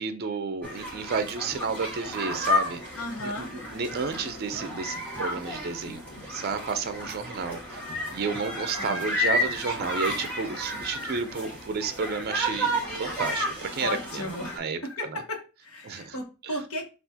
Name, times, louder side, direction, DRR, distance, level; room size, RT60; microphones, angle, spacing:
voice 1, 0.0-2.8 3.2-7.8 8.1-14.3 14.6-14.8 15.1-15.2 15.8-16.2 16.4-16.6, right 5 dB, 45° right, 0.4 m, -32 dB
sound 1, 0.6-14.6, left 1 dB, 10° left, 1.6 m, -32 dB
voice 2, 3.0-3.5 8.7-9.1 13.8-16.9, left 1 dB, 85° left, 1.1 m, -35 dB
5.7 x 2.4 x 2.7 m
head